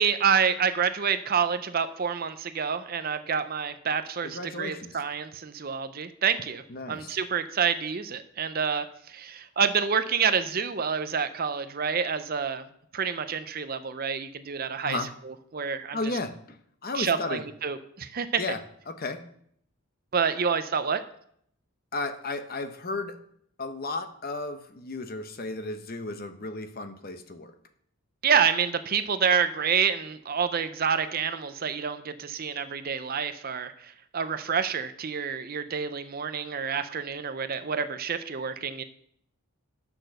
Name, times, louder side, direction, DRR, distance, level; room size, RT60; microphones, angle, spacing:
voice 1, 0.0-6.6 6.9-12.6 12.9-15.0 15.3-16.0 16.9-18.4 20.1-21.0 28.2-38.8, right 6 dB, 40° right, 11 dB, 0.6 m, -28 dB
voice 2, 4.2-5.0 6.7-7.2 14.8-15.1 15.9-17.4 18.4-18.6 18.9-19.2 21.9-23.2 23.6-27.5, left 3 dB, 40° left, 9 dB, 0.8 m, -34 dB
8.9 x 6.1 x 6.5 m, 0.68 s
head